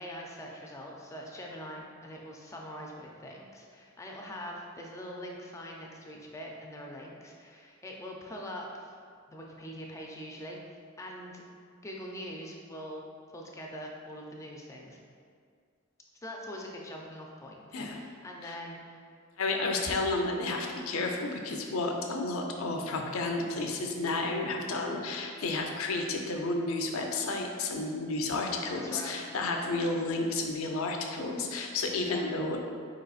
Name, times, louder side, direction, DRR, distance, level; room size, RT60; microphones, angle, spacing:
voice 1, 0.0-9.0 9.3-10.6 11.0-11.4 11.8-13.1 13.3-15.0 16.2-19.0 28.6-29.2 32.0-32.2, equal, 15° left, -1 dB, 0.4 m, -43 dB
voice 2, 19.4-32.6, left 2 dB, 85° left, 2 dB, 0.5 m, -31 dB
4.7 x 3.9 x 2.4 m, 2.2 s
head